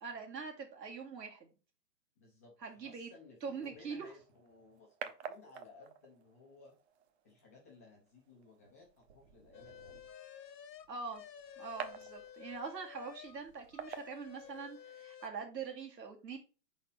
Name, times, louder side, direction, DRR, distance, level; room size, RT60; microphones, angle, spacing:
voice 1, 0.0-1.5 2.6-3.1 3.4-4.1 10.9-11.2 11.6-16.4, right 5 dB, 85° right, 2 dB, 2.0 m, -43 dB
voice 2, 2.2-2.5 2.8-6.7 7.2-10.1, left 3 dB, 10° left, -2 dB, 0.4 m, -59 dB
sound 1, 4.0-15.0, right 8 dB, 40° right, 0.7 m, -51 dB
sound 2, 9.5-13.4 13.7-15.3, left 9 dB, 90° left, 0.8 m, -52 dB
4.6 x 4.1 x 5.5 m, 0.34 s
hypercardioid pair, 135°, 49 cm